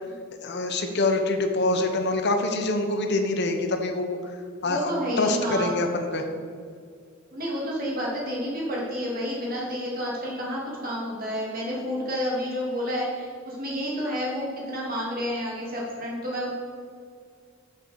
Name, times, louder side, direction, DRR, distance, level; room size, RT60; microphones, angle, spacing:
voice 1, 0.4-4.2 4.6-4.9 5.2-6.3, left 2 dB, 55° left, 5 dB, 0.9 m, -25 dB
voice 2, 4.6-5.8 7.3-16.5, equal, 45° right, -4 dB, 2.9 m, -30 dB
7.6 x 7.1 x 6.8 m, 2.1 s
head